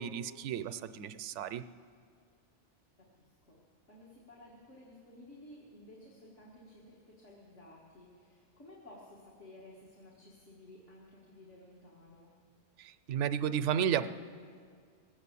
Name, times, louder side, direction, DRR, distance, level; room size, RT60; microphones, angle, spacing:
voice 1, 0.0-1.6 12.8-14.1, right 9 dB, 80° right, 12 dB, 0.9 m, -33 dB
voice 2, 3.0-3.6 3.9-12.4, left 1 dB, 80° left, -5 dB, 2.3 m, -55 dB
19.5 x 8.0 x 8.3 m, 2.1 s
omnidirectional pair, 1.2 m